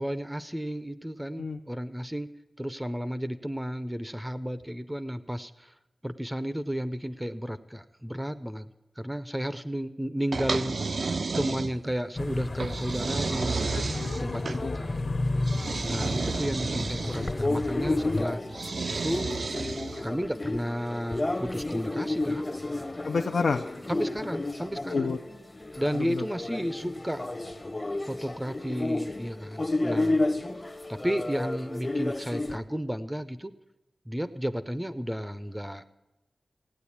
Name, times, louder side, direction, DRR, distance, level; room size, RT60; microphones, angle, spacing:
voice 1, 0.0-2.3 2.6-5.7 6.0-8.7 9.0-13.6 14.2-15.1 15.8-18.4 18.9-19.3 20.0-22.4 23.9-25.1 25.8-27.2 28.1-30.2 30.9-33.5 34.1-35.8, equal, 10° right, 11 dB, 0.6 m, -33 dB
sound 1, 10.3-12.0 12.6-14.6 15.4-17.3 18.5-20.1, right 4 dB, 65° right, 0.5 m, -32 dB
sound 2, 12.2-18.2, left 2 dB, 50° left, 1.1 m, -32 dB
voice 2, 13.7-14.8 23.0-23.6 24.9-25.2 25.9-26.2, left 4 dB, 85° left, 4 dB, 0.6 m, -30 dB
sound 3, 17.0-32.6, left 2 dB, 25° left, 0.8 m, -31 dB
16.5 x 9.1 x 8.5 m, 0.99 s
wide cardioid pair, 85°, 0 cm